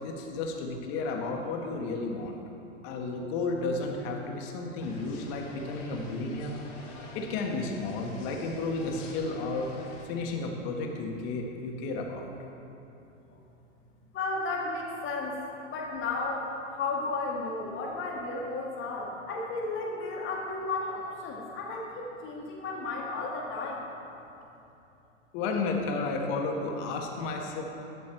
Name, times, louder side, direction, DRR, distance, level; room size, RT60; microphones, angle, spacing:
voice 1, 0.0-2.4 2.8-6.5 7.1-9.7 10.0-12.2 25.3-27.6, left 3 dB, 50° left, 2 dB, 1.5 m, -32 dB
sound 1, 4.8-10.0, left 2 dB, 75° left, 2.1 m, -47 dB
voice 2, 14.1-23.8, left 3 dB, 30° left, -2 dB, 1.5 m, -33 dB
11.5 x 6.2 x 4.6 m, 2.9 s
hypercardioid pair, 105°, 38 cm